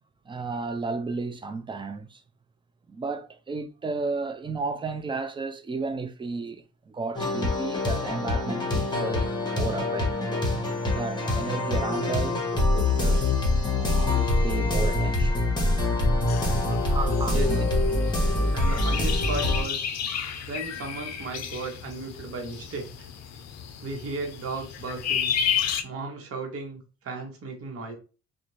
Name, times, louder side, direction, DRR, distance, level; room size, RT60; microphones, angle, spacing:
voice 1, 0.3-2.2 2.9-10.5 10.9-13.3 13.6-15.5 16.9-17.6, right 4 dB, 15° right, 0.3 m, -33 dB
sound 1, 7.1-19.6, left 2 dB, 15° left, 0.9 m, -25 dB
sound 2, 16.3-25.8, left 8 dB, 60° left, 0.5 m, -32 dB
voice 2, 16.7-17.0 17.3-17.6 18.5-19.9 20.5-23.1 23.8-25.3 25.8-27.9, right 3 dB, 50° right, 1.0 m, -35 dB
2.4 x 2.1 x 3.0 m
cardioid pair, 90°, 30 cm